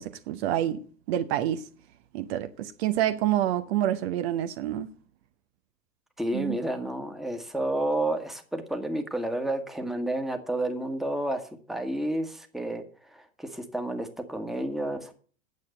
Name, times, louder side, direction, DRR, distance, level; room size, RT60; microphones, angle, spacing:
voice 1, 0.0-1.7 2.1-4.9 6.3-6.6, right 12 dB, 50° right, 0.9 m, -28 dB
voice 2, 6.2-15.1, right 1 dB, ahead, 1.4 m, -31 dB
9.5 x 7.4 x 7.6 m
figure-of-eight pair, 90°, 40 cm